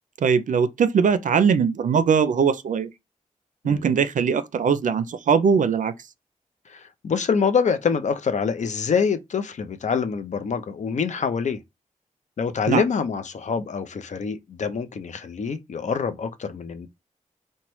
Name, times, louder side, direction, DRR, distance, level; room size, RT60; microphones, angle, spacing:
voice 1, 0.2-2.9 3.6-5.9 12.7-12.9, right 6 dB, 75° right, 0.4 m, -20 dB
voice 2, 6.7-11.6 12.4-16.9, left 6 dB, 60° left, 0.5 m, -25 dB
2.9 x 2.2 x 3.0 m
cardioid pair, 70°, 14 cm